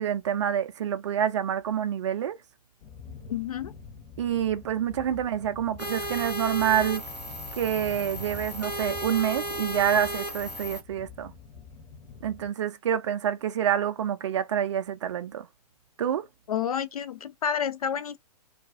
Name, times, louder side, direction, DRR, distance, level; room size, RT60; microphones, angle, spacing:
voice 1, 0.0-2.4 4.2-7.0 7.6-11.3 12.2-15.5 16.0-16.2, right 9 dB, 45° right, 0.4 m, -27 dB
sound 1, 2.8-12.5, left 5 dB, 35° left, 0.8 m, -46 dB
voice 2, 3.3-3.7 16.5-18.2, left 8 dB, 65° left, 0.4 m, -29 dB
sound 2, 5.8-10.8, right 1 dB, 85° left, 0.8 m, -34 dB
2.3 x 2.2 x 2.4 m
figure-of-eight pair, 120°, 20 cm